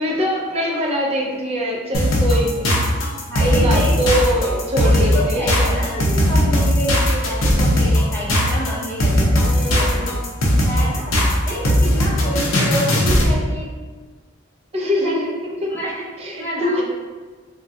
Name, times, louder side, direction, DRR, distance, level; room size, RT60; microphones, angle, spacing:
voice 1, 0.0-2.7 3.4-5.7 9.4-10.1 14.7-15.7 16.2-16.8, equal, 30° right, -2 dB, 0.5 m, -23 dB
sound 1, 1.9-13.3, equal, 90° left, 0.6 m, -17 dB
voice 2, 3.3-4.0 4.8-9.9 10.6-11.2 11.5-13.7 15.0-15.3 15.7-16.8, equal, 10° left, -7 dB, 0.7 m, -28 dB
3.4 x 2.2 x 2.6 m, 1.4 s
head